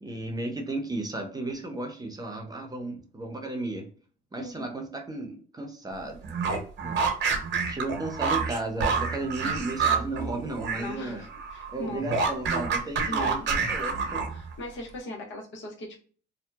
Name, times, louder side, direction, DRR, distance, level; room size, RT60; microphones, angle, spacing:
voice 1, 0.0-3.9 4.3-6.2 6.8-7.0 7.7-11.2 11.7-14.2, right 2 dB, 20° right, 3 dB, 0.6 m, -34 dB
voice 2, 4.4-4.8 10.7-12.1 13.1-13.5 14.3-16.0, left 2 dB, 70° left, 1 dB, 0.9 m, -39 dB
sound 1, 6.2-10.9 11.2-14.5, right 5 dB, 65° right, 0.8 m, -28 dB
2.7 x 2.1 x 2.2 m, 0.43 s
cardioid pair, 90°, 20 cm